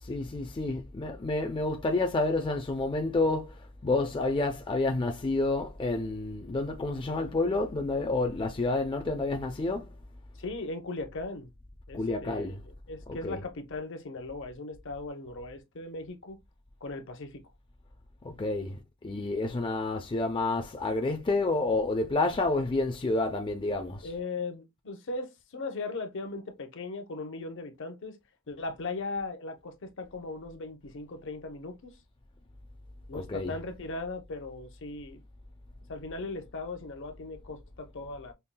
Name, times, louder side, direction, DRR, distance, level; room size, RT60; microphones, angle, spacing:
voice 1, 0.0-9.9 11.9-12.6 13.1-13.4 18.2-24.1 33.1-33.6, left 2 dB, 25° left, 0.4 m, -29 dB
voice 2, 10.4-11.5 11.9-16.4 16.8-17.4 24.0-28.2 28.5-32.0 33.1-35.2 35.9-38.3, left 3 dB, 60° left, 0.8 m, -38 dB
5.4 x 2.3 x 2.2 m
head